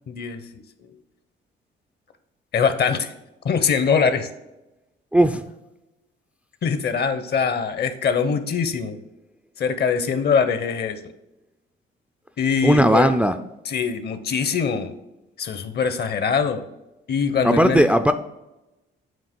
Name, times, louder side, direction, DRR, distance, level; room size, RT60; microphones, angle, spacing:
voice 1, 0.1-0.4 2.5-3.1 3.4-4.3 6.6-9.0 9.6-11.0 12.4-13.1 13.7-15.0 15.4-16.6 17.1-17.8, left 6 dB, 55° left, 10 dB, 0.7 m, -22 dB
voice 2, 5.1-5.4 12.6-13.4 17.4-18.1, equal, 5° right, 8 dB, 0.3 m, -17 dB
7.3 x 2.9 x 4.4 m, 0.96 s
cardioid pair, 90°, 20 cm